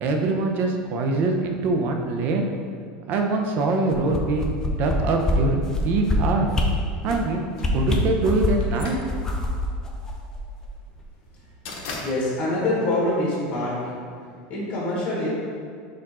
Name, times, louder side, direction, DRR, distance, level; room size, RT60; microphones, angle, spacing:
voice 1, 0.0-2.5 3.1-6.5 7.0-7.4 7.7-9.0, right 2 dB, 45° right, 3 dB, 0.5 m, -23 dB
sound 1, 3.9-4.9 5.2-5.4 5.7-6.2 6.5-6.7 7.1-7.2 7.6-8.7 9.1-10.7 11.0-11.1, left 2 dB, 15° left, 0.4 m, -25 dB
sound 2, 7.6-13.7, left 3 dB, 60° left, 0.7 m, -40 dB
voice 2, 12.0-14.0 14.5-15.3, left 1 dB, 35° left, -5 dB, 1.4 m, -25 dB
4.4 x 2.5 x 4.2 m, 2.1 s
supercardioid pair, 135°, 4 cm